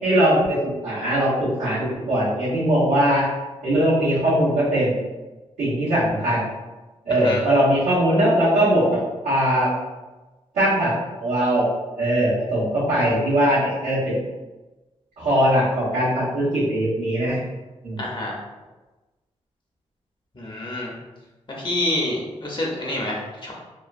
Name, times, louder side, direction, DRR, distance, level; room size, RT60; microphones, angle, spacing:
voice 1, 0.0-3.2 3.6-4.9 5.6-6.4 7.0-9.0 9.2-9.7 10.5-10.9 11.2-11.6 12.0-14.2 15.2-17.4 17.8-18.0, right 1 dB, 80° right, -13 dB, 1.2 m, -20 dB
voice 2, 7.1-7.4 18.0-18.3 20.3-20.9 21.5-23.5, left 1 dB, 40° left, -3 dB, 0.8 m, -27 dB
2.9 x 2.2 x 2.5 m, 1.1 s
cardioid pair, 55°, 12 cm